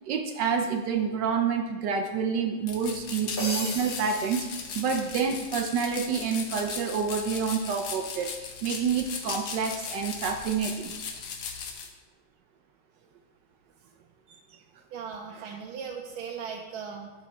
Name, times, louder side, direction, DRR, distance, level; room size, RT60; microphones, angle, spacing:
voice 1, 0.1-4.5 4.7-10.9, right 6 dB, 75° right, 6 dB, 1.1 m, -28 dB
sound 1, 2.7-11.9, left 6 dB, 65° left, 1.3 m, -38 dB
sound 2, 3.4-5.4, left 1 dB, 35° left, 1.0 m, -37 dB
voice 2, 14.9-17.1, right 6 dB, 90° right, 0 dB, 1.5 m, -38 dB
8.8 x 5.6 x 4.2 m, 1.2 s
omnidirectional pair, 2.2 m